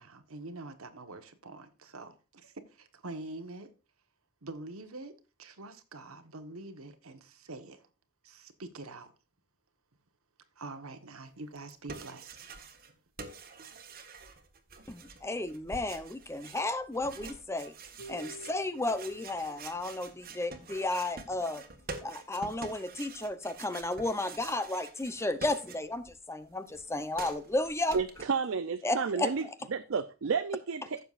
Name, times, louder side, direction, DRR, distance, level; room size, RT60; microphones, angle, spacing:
voice 1, 0.0-3.7 4.4-5.1 5.4-7.8 8.2-9.1 10.5-12.5 12.9-13.0, right 2 dB, 90° right, 1.4 m, -45 dB
sound 1, 11.6-12.9 13.2-26.1 26.4-28.3, right 4 dB, 45° right, 1.5 m, -47 dB
voice 2, 14.9-17.7 18.1-21.6 22.0-28.0 28.8-29.5, left 2 dB, 15° left, 0.7 m, -33 dB
Harp, 18.0-24.0, right 1 dB, 65° left, 4.7 m, -54 dB
voice 3, 27.9-31.0, right 5 dB, 65° right, 0.5 m, -31 dB
15.5 x 6.9 x 2.5 m
head